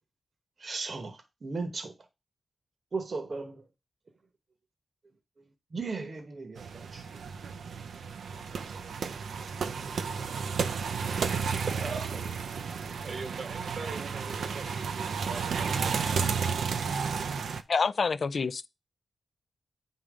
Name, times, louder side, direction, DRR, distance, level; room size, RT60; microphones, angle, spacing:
voice 1, 0.6-1.9 2.9-3.6 5.7-7.1 10.3-10.4 11.7-12.4, right 4 dB, 50° right, 1.1 m, -36 dB
sound 1, 6.6-17.6, right 5 dB, 90° right, 0.6 m, -32 dB
voice 2, 12.8-16.0, right 4 dB, 75° right, 1.3 m, -42 dB
voice 3, 17.7-18.7, left 5 dB, 55° left, 0.4 m, -27 dB
8.7 x 3.8 x 4.9 m
wide cardioid pair, 95°, 0 cm